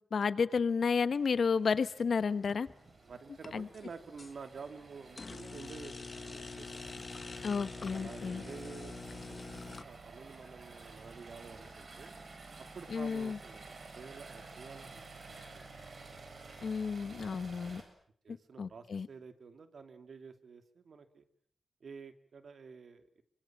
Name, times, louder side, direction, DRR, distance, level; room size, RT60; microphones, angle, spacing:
voice 1, 0.0-2.7 3.5-3.7 7.4-8.4 12.9-13.4 16.6-17.8 18.3-19.1, left 5 dB, 70° left, 14 dB, 1.3 m, -32 dB
sound 1, 1.1-17.8, right 3 dB, 55° right, 7.1 m, -52 dB
sound 2, 2.4-2.9 3.3-4.3 5.2-9.8, left 4 dB, 40° left, 1.4 m, -45 dB
voice 2, 3.0-7.2 7.9-12.2 12.7-15.9 17.1-17.4 18.2-21.3 21.8-23.2, right 5 dB, 70° right, 8 dB, 2.7 m, -50 dB
27.0 x 25.0 x 7.5 m, 0.63 s
wide cardioid pair, 105°, 0 cm